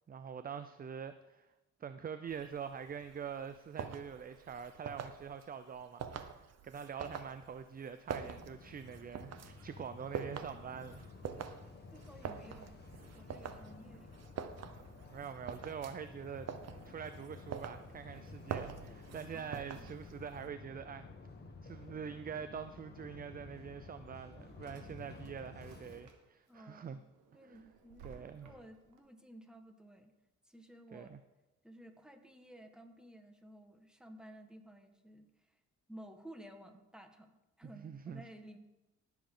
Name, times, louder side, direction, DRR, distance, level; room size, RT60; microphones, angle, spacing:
voice 1, 0.1-1.5 1.8-11.1 14.5-14.7 15.1-16.5 16.9-21.1 21.6-27.0 27.4-27.6 28.0-28.5 30.9-31.2 37.7-38.2, right 7 dB, 30° right, 11 dB, 0.5 m, -45 dB
sound 1, 2.3-20.5, right 7 dB, 55° right, 1.0 m, -46 dB
sound 2, 8.2-26.0, left 4 dB, 35° left, 1.6 m, -53 dB
voice 2, 11.9-12.8 13.1-14.1 19.3-19.9 26.5-27.0 27.3-30.1 30.4-31.1 31.6-35.6 35.9-38.6, equal, ahead, 6 dB, 1.5 m, -55 dB
Drawer open or close, 24.1-26.5 26.9-29.0, right 5 dB, 80° right, 1.7 m, -59 dB
18.5 x 7.2 x 3.8 m, 0.99 s
cardioid pair, 90°, 30 cm